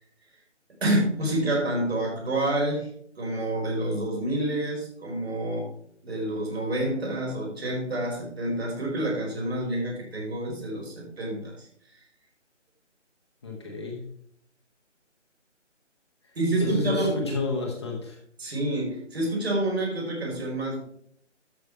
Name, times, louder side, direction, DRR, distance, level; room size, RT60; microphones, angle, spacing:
voice 1, 0.8-2.9 3.1-5.7 6.0-11.7 16.3-17.2 18.4-20.8, right 1 dB, 55° right, -2 dB, 5.0 m, -28 dB
voice 2, 13.4-14.0 16.2-18.2, left 3 dB, 20° left, -1 dB, 1.4 m, -30 dB
12.5 x 5.6 x 4.7 m, 0.65 s
figure-of-eight pair, 165°, 37 cm